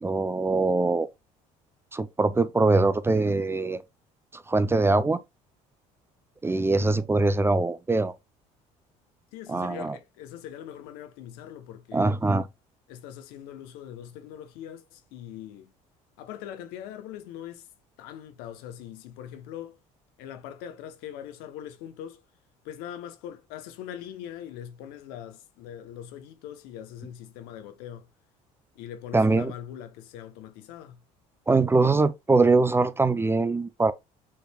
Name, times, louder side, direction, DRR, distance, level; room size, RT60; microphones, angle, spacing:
voice 1, 0.0-1.1 1.9-3.8 4.3-5.2 6.4-8.1 9.5-9.9 11.9-12.5 29.1-29.5 31.5-33.9, right 3 dB, 15° right, 0.4 m, -23 dB
voice 2, 9.3-12.1 12.9-15.7 16.2-17.7 18.0-19.8 20.2-22.2 22.6-28.1 28.8-31.0, left 10 dB, 80° left, 0.8 m, -41 dB
5.6 x 3.2 x 2.2 m
supercardioid pair, 80°, 16 cm